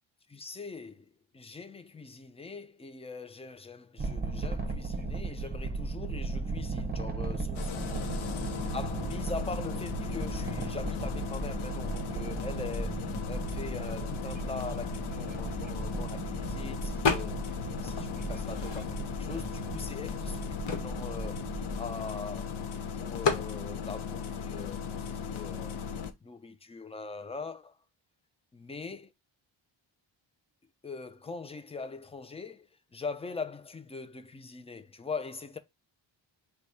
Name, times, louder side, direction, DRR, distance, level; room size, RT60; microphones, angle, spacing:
voice 1, 0.3-8.1 8.7-17.4 17.8-21.4 21.8-25.7 26.2-27.8 28.5-29.1 30.8-35.6, left 4 dB, 15° left, 0.4 m, -42 dB
sound 1, 4.0-21.9, right 3 dB, 20° right, 0.8 m, -37 dB
Engine starting, 7.5-26.1, left 7 dB, 80° left, 0.8 m, -37 dB
sound 2, 17.0-17.6 18.0-19.2 19.8-19.9 20.2-22.4 23.2-23.5, left 5 dB, 60° left, 1.2 m, -32 dB
4.1 x 2.3 x 4.6 m
wide cardioid pair, 130°, 47 cm